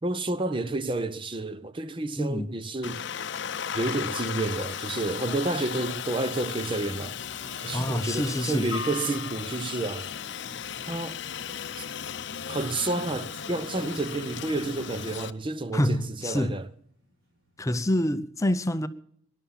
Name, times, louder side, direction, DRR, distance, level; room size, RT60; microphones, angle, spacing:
voice 1, 0.0-3.0 3.7-7.2 7.6-10.1 10.9-11.2 11.8-11.9 12.5-16.7, right 2 dB, 25° right, 0.6 m, -30 dB
voice 2, 2.2-2.5 7.7-8.7 15.7-16.6 17.6-18.9, left 1 dB, 15° left, 0.6 m, -27 dB
Aircraft, 2.8-15.3, left 8 dB, 60° left, 0.6 m, -35 dB
sound 1, 6.7-17.7, equal, 90° right, 6.0 m, -55 dB
22.0 x 11.5 x 5.6 m
head